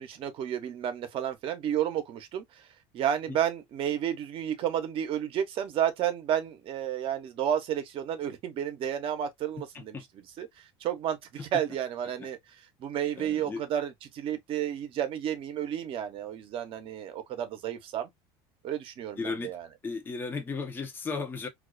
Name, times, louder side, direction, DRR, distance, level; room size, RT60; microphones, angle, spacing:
voice 1, 0.0-2.7 2.9-10.0 10.4-11.2 11.5-12.4 12.8-18.1 18.6-19.7, right 10 dB, 45° right, 0.8 m, -31 dB
voice 2, 13.2-13.6 19.2-19.5 19.8-21.5, left 4 dB, 15° left, 0.6 m, -35 dB
2.4 x 2.3 x 2.2 m
supercardioid pair, 125°, 12 cm